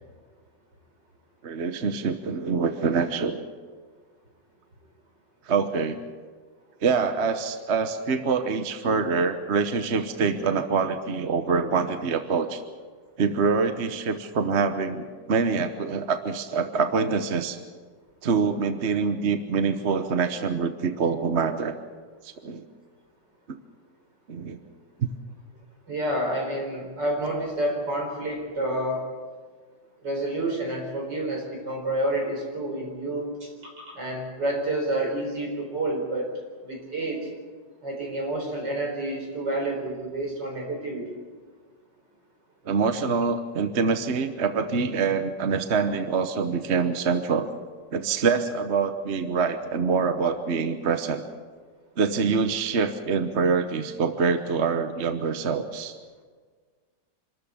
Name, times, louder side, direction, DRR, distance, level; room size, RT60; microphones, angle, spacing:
voice 1, 1.4-3.5 5.5-6.0 6.8-12.6 13.2-17.6 18.2-21.8 22.2-22.6 23.5-23.6 24.3-24.6 25.0-25.1 42.7-47.5 47.9-51.2 52.0-55.9, right 5 dB, 45° right, 9 dB, 1.1 m, -25 dB
voice 2, 25.9-29.1 30.0-36.3 36.6-37.3 37.8-41.1, right 1 dB, 65° right, 2 dB, 5.0 m, -29 dB
26.0 x 13.5 x 8.5 m, 1.5 s
omnidirectional pair, 2.0 m